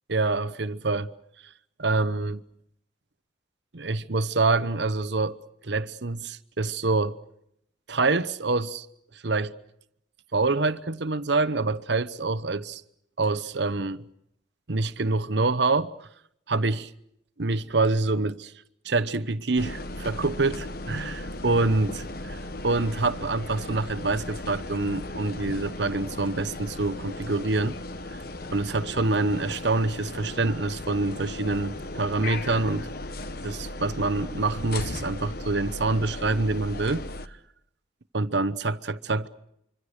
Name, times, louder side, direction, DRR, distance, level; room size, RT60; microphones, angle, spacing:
voice 1, 0.1-1.1 1.8-2.4 3.7-5.4 5.6-7.2 7.9-8.9 9.1-9.5 10.3-12.8 13.2-14.0 14.7-16.1 16.5-16.9 17.4-18.5 18.8-22.0 22.6-27.7 28.1-28.2 28.5-32.9 33.4-37.4 38.1-39.3, right 3 dB, 65° right, 0.9 m, -26 dB
sound 1, 19.6-37.3, left 2 dB, 50° left, 1.0 m, -36 dB
25.5 x 25.0 x 6.6 m
head